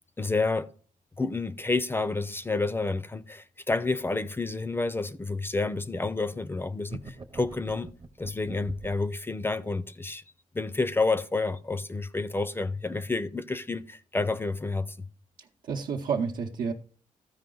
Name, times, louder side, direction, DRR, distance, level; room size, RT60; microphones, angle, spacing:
voice 1, 0.2-0.7 1.2-7.9 8.2-10.2 10.5-15.1, left 3 dB, 15° left, 0.4 m, -29 dB
sound 1, 6.9-9.1, right 3 dB, 30° right, 0.7 m, -43 dB
voice 2, 15.4-16.7, right 6 dB, 85° right, 0.8 m, -30 dB
14.0 x 5.0 x 3.8 m
cardioid pair, 120°, 14 cm